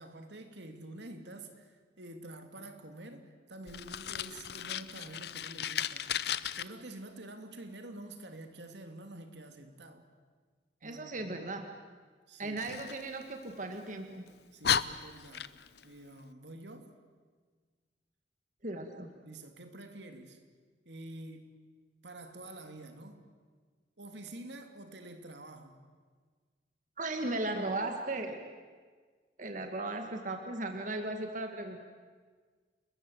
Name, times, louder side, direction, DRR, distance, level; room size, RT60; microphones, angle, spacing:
voice 1, 0.0-6.0 6.6-10.1 10.8-11.5 12.3-12.6 14.5-15.5 15.8-16.9 19.2-20.4 20.8-21.6 22.0-23.2 24.0-25.8, right 1 dB, 75° right, 2.6 m, -48 dB
Fire, 3.7-6.6 12.6-13.8 14.3-14.4 14.6-15.8, left 9 dB, 65° left, 0.8 m, -35 dB
voice 2, 10.8-11.7 12.4-14.2 18.6-19.1 27.0-28.4 29.4-31.8, right 2 dB, 45° right, 1.9 m, -36 dB
30.0 x 21.5 x 7.9 m
head